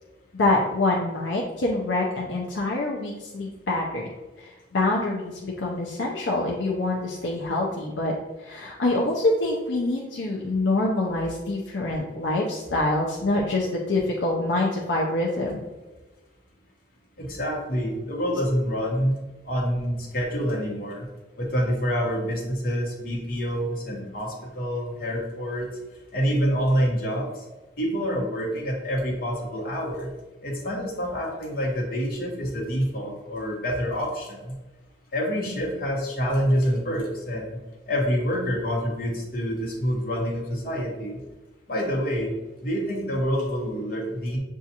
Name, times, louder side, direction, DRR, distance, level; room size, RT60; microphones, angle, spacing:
voice 1, 0.3-4.1 4.4-8.1 8.4-15.6, left 2 dB, 70° left, -2 dB, 0.5 m, -25 dB
voice 2, 17.2-19.1 19.5-21.1 21.4-25.7 26.1-27.4 27.8-30.1 30.4-34.5 35.1-37.6 37.9-41.2 41.7-42.3 42.6-44.4, equal, 50° left, -2 dB, 1.0 m, -27 dB
6.9 x 2.4 x 2.8 m, 1.2 s
head